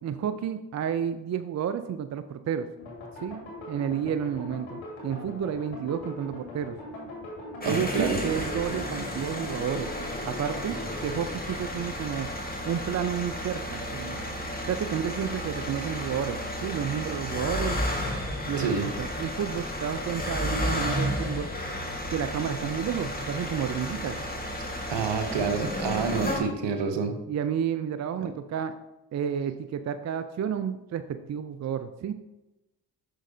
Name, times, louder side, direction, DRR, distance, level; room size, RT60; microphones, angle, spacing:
voice 1, 0.0-2.7 3.2-3.4 3.7-6.8 7.6-9.9 10.3-10.8 11.0-12.3 12.7-14.3 14.7-17.8 18.5-21.5 22.1-24.2 27.3-28.7 29.1-32.1, right 8 dB, 40° right, 10 dB, 0.4 m, -31 dB
sound 1, 2.8-11.3, left 1 dB, 80° left, 2.1 m, -40 dB
sound 2, 7.6-26.4, left 1 dB, 20° left, 1.6 m, -32 dB
voice 2, 7.6-8.2 18.6-18.9 24.9-27.1 28.2-28.3, right 5 dB, 65° right, 6 dB, 1.0 m, -28 dB
6.3 x 6.0 x 2.7 m, 0.98 s
hypercardioid pair, 45°, 46 cm